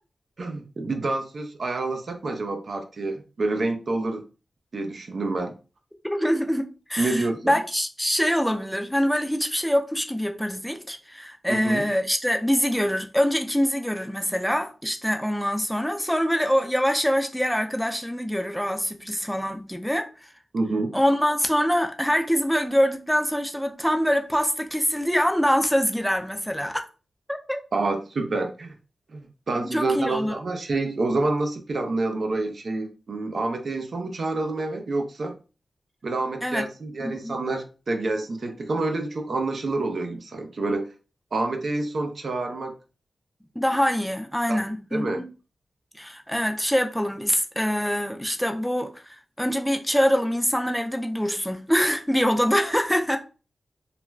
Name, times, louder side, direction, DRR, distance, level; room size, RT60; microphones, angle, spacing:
voice 1, 0.4-4.2 4.7-5.5 7.0-7.6 11.5-11.8 20.5-20.9 27.7-28.7 29.1-35.3 36.0-40.9 41.3-42.7 44.5-44.6 44.9-45.2, right 2 dB, 65° right, 0.5 m, -28 dB
voice 2, 6.0-20.3 20.9-26.8 27.3-27.6 29.7-30.4 36.4-36.6 37.0-37.4 43.6-45.3 46.0-49.0 49.4-53.2, equal, 5° left, 0.4 m, -24 dB
2.4 x 2.2 x 3.1 m
cardioid pair, 60°, 0 cm